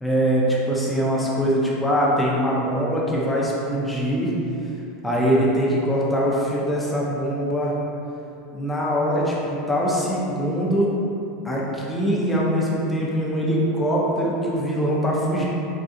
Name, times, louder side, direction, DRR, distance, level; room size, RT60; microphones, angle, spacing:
voice 1, 0.0-4.3 5.0-7.8 8.5-10.9 11.4-15.4, equal, 5° left, -5 dB, 0.6 m, -22 dB
3.6 x 2.3 x 2.6 m, 2.8 s
supercardioid pair, 130°, 0 cm